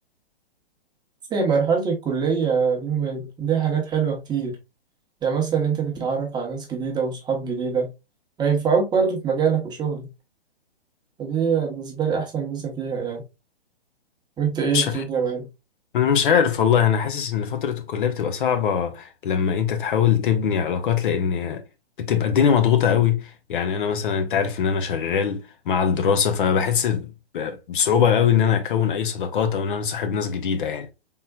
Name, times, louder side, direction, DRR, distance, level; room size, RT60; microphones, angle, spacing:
voice 1, 1.3-4.6 5.2-7.9 8.4-10.1 11.2-13.2 14.4-15.5, right 6 dB, 15° right, 0.9 m, -24 dB
voice 2, 14.7-15.0 15.9-21.6 22.0-30.9, left 7 dB, 55° left, 0.8 m, -22 dB
4.2 x 3.6 x 2.2 m
hypercardioid pair, 125°, 30 cm